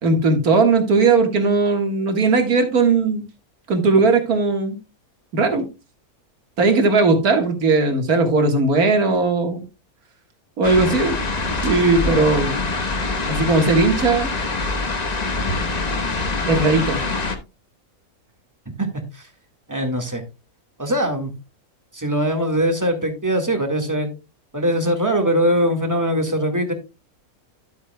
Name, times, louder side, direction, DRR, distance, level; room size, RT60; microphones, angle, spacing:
voice 1, 0.0-3.2 3.7-4.8 5.3-5.7 6.6-9.6 10.6-12.6 13.3-14.3 16.5-17.0, right 3 dB, 80° right, 2.2 m, -18 dB
sound 1, 10.6-17.4, left 3 dB, 30° left, 1.1 m, -24 dB
voice 2, 19.7-20.2 20.8-21.3 21.9-24.1 24.5-26.7, equal, 15° right, 1.7 m, -21 dB
12.0 x 8.2 x 2.2 m
omnidirectional pair, 1.5 m